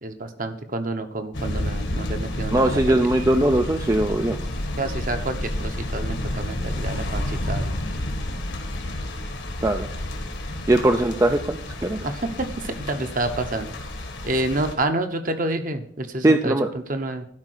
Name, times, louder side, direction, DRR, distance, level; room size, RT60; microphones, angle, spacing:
voice 1, 0.0-3.0 4.8-7.7 12.0-13.7 14.2-17.3, right 2 dB, 45° right, 7 dB, 1.1 m, -28 dB
sound 1, 1.3-14.7, left 1 dB, 70° left, 1.6 m, -30 dB
voice 2, 2.5-4.4 9.6-9.9 10.7-12.0 16.2-16.7, right 1 dB, 15° right, 6 dB, 0.4 m, -20 dB
12.0 x 5.1 x 6.6 m, 0.66 s
head